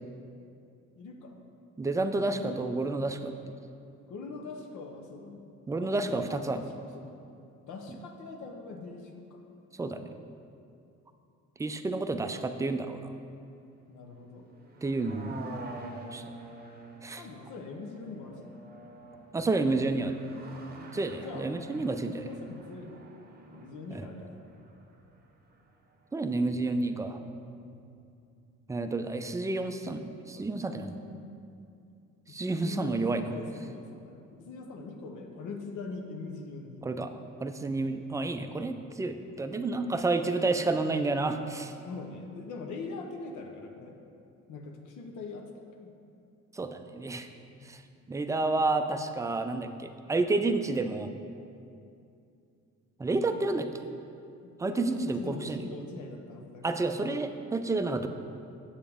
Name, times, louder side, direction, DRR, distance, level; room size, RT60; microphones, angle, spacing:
voice 1, 0.9-1.3 2.3-2.7 4.1-5.5 5.8-7.2 7.6-9.4 13.9-14.5 17.2-18.5 21.2-21.5 22.2-23.0 23.5-24.3 27.6-28.0 30.4-31.3 32.3-36.9 41.8-44.0 44.5-45.9 47.6-47.7 54.4-57.2, left 3 dB, 75° left, 2 dB, 0.8 m, -42 dB
voice 2, 1.8-3.3 5.7-6.6 9.8-10.1 11.6-13.1 14.8-15.8 16.1-16.2 17.0-17.3 19.3-20.2 20.9-22.3 23.9-24.0 26.1-27.2 28.7-30.9 32.3-33.2 36.8-37.1 37.4-41.7 46.5-47.3 47.7-47.8 48.1-51.1 53.0-53.9 54.6-55.6 56.6-58.1, right 3 dB, 10° right, 7 dB, 0.3 m, -30 dB
sound 1, 14.5-25.6 25.9-26.0, right 2 dB, 30° right, 0.8 m, -47 dB
7.1 x 6.9 x 3.5 m, 2.6 s
cardioid pair, 90°, 30 cm